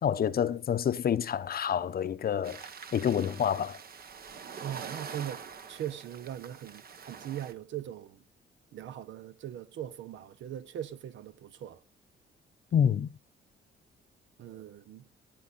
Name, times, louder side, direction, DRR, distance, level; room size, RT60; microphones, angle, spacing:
voice 1, 0.0-2.6 2.9-3.8 12.7-13.1, left 8 dB, 50° left, 0.8 m, -28 dB
sound 1, 2.4-7.5, right 6 dB, 50° right, 1.1 m, -45 dB
voice 2, 4.6-5.4 5.7-8.2 8.7-11.8 14.4-15.1, right 11 dB, 70° right, 0.9 m, -40 dB
18.0 x 8.5 x 4.1 m
cardioid pair, 90°, 20 cm